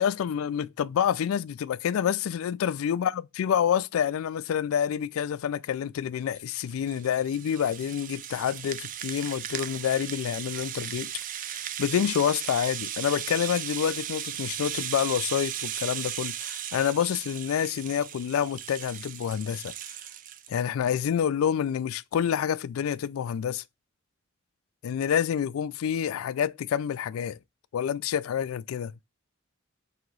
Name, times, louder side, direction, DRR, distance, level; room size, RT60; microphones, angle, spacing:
voice 1, 0.0-11.1 11.4-19.7 20.5-23.6 24.8-27.4 27.7-28.9, left 8 dB, 80° left, 0.3 m, -28 dB
Rattle (instrument), 6.4-20.6, right 11 dB, 40° right, 0.3 m, -36 dB
3.9 x 2.9 x 4.6 m
head